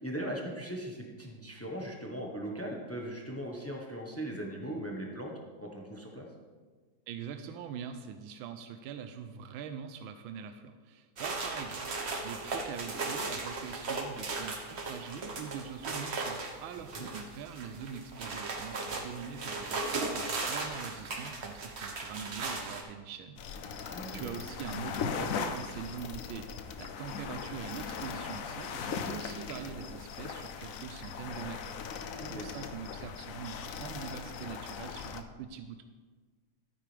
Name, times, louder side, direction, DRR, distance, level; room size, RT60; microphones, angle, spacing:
voice 1, 0.0-5.3 5.6-6.3 16.9-17.1 23.9-24.3 32.2-32.5, right 1 dB, 10° left, 0 dB, 0.8 m, -39 dB
voice 2, 7.1-11.9 12.2-26.5 26.8-32.0 32.3-35.8, right 7 dB, 85° right, 8 dB, 1.4 m, -43 dB
sound 1, 11.2-22.8, right 3 dB, 40° right, 1.1 m, -37 dB
sound 2, 23.4-35.2, left 6 dB, 75° left, 0.7 m, -39 dB
12.5 x 9.7 x 3.4 m, 1.4 s
omnidirectional pair, 2.2 m